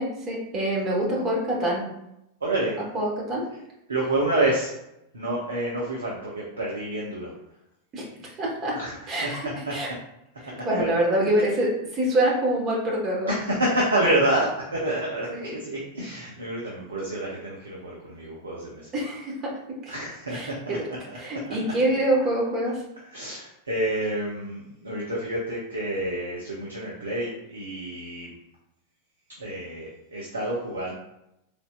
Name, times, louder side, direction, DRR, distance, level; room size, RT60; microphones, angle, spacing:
voice 1, 0.0-1.9 2.9-3.4 7.9-8.8 9.1-9.9 10.4-13.3 15.3-15.6 18.9-19.5 19.8-19.9 20.3-20.8 21.2-22.8, right 1 dB, 30° right, -3 dB, 1.4 m, -26 dB
voice 2, 2.4-2.8 3.9-4.7 5.1-7.3 8.7-8.9 9.2-9.3 9.7-9.8 10.6-10.9 13.3-15.3 15.6-18.9 19.9-20.8 21.1-21.2 21.4-21.5 23.1-28.3 29.4-30.9, right 1 dB, 75° right, -4 dB, 0.7 m, -28 dB
3.9 x 3.4 x 2.4 m, 0.84 s
figure-of-eight pair, 90°, 0 cm